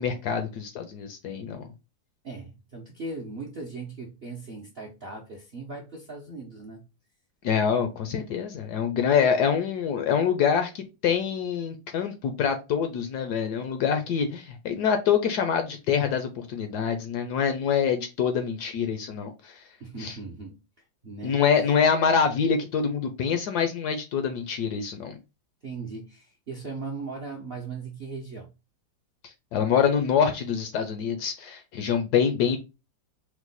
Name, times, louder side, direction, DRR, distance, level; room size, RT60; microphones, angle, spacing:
voice 1, 0.0-1.7 7.4-19.6 20.0-20.2 21.2-25.2 29.5-32.6, left 7 dB, 70° left, 1.0 m, -25 dB
voice 2, 2.2-6.8 19.8-20.6 21.0-21.4 25.6-28.5, right 3 dB, 55° right, 0.6 m, -38 dB
4.6 x 2.1 x 3.9 m
omnidirectional pair, 2.0 m